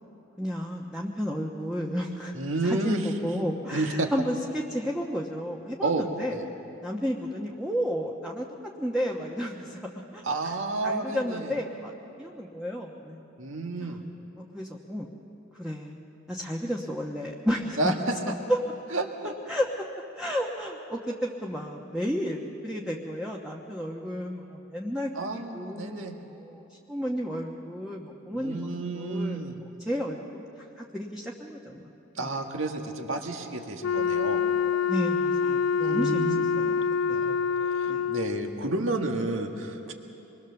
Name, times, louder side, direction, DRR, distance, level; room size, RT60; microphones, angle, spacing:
voice 1, 0.4-2.3 2.6-6.3 6.8-8.5 8.8-9.8 10.1-10.6 10.8-13.3 13.8-14.0 14.4-15.1 15.5-16.0 16.3-18.1 18.5-18.6 19.5-19.9 20.2-29.5 29.9-30.5 30.8-31.9 32.1-32.4 34.9-37.4 37.9-38.1, equal, 5° right, -2 dB, 1.1 m, -32 dB
voice 2, 2.3-3.1 3.7-4.1 5.8-6.0 6.3-6.4 10.2-11.5 13.4-14.0 17.8-18.2 18.9-19.3 25.2-26.2 28.3-29.6 32.2-34.4 35.8-36.4 37.1-37.4 37.7-39.9, right 2 dB, 75° right, 3 dB, 1.9 m, -30 dB
Wind instrument woodwind instrument, 33.8-38.5, left 6 dB, 75° left, 0.4 m, -26 dB
26.0 x 21.5 x 7.0 m, 2.9 s
head